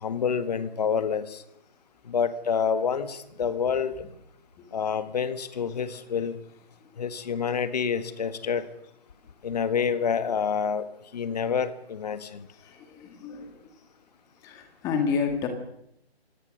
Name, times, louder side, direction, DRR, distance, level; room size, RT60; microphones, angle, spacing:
voice 1, 0.0-1.4 2.1-3.9 4.7-6.4 7.0-8.6 9.4-10.8 11.1-12.4, left 6 dB, 40° left, 12 dB, 1.6 m, -27 dB
voice 2, 12.5-13.5 14.4-15.5, left 6 dB, 10° left, 6 dB, 1.8 m, -30 dB
24.5 x 18.0 x 6.4 m, 0.79 s
figure-of-eight pair, 160°, 32 cm